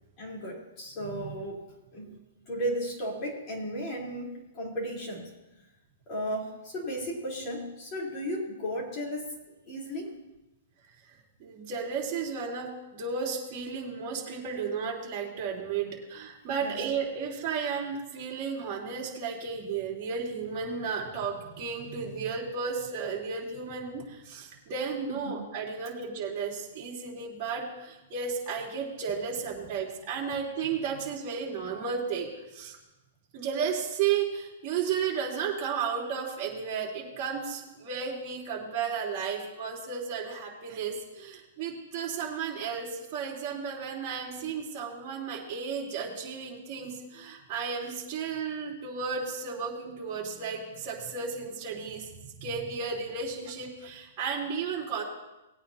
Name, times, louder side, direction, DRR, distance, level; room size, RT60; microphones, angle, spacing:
voice 1, 0.2-1.6 1.9-2.1 2.5-5.3 6.1-9.3 9.7-10.1 16.6-16.8 25.2-25.3, equal, 25° left, -4 dB, 3.8 m, -34 dB
voice 2, 1.0-1.3 2.0-2.1 11.1-32.8 33.3-55.0, right 6 dB, 30° right, -5 dB, 3.5 m, -33 dB
19.5 x 9.0 x 2.8 m, 1.0 s
hypercardioid pair, 160°, 0 cm